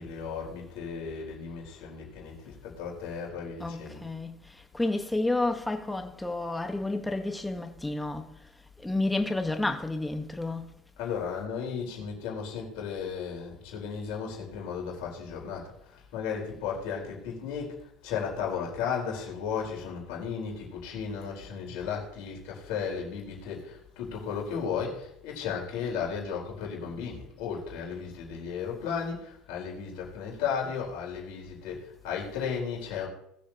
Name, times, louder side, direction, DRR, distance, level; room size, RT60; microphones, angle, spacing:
voice 1, 0.0-4.0 11.0-17.7 18.0-33.1, left 6 dB, 75° left, 4.5 m, -35 dB
voice 2, 3.6-8.3 8.8-10.7, left 2 dB, 10° left, 1.4 m, -30 dB
20.5 x 7.2 x 3.0 m
supercardioid pair, 95°, 0 cm